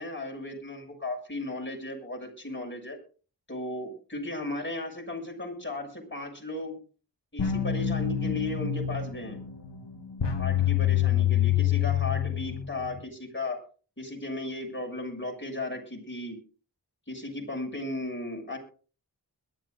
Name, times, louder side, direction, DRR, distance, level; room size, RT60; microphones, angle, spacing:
voice 1, 0.0-3.0 3.5-6.8 7.3-9.4 10.4-13.6 14.0-16.4 17.1-18.6, left 2 dB, 25° left, 0 dB, 6.8 m, -35 dB
sound 1, 7.4-13.0, left 10 dB, 80° left, 1.4 m, -27 dB
22.0 x 13.0 x 2.6 m, 0.38 s
wide cardioid pair, 60°, 42 cm